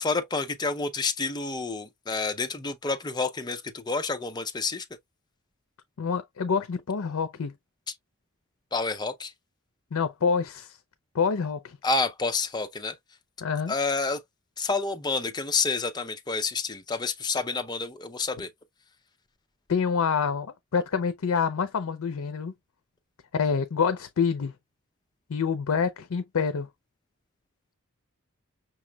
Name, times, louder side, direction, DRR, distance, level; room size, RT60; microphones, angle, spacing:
voice 1, 0.0-4.9 8.7-9.3 11.8-12.9 13.7-14.2 14.6-18.5, left 3 dB, 20° left, 0.4 m, -29 dB
voice 2, 6.0-7.5 9.9-10.8 11.1-11.8 13.4-13.7 19.7-22.5 23.3-24.5 25.3-26.7, left 6 dB, 75° left, 0.5 m, -27 dB
5.8 x 3.0 x 2.2 m
head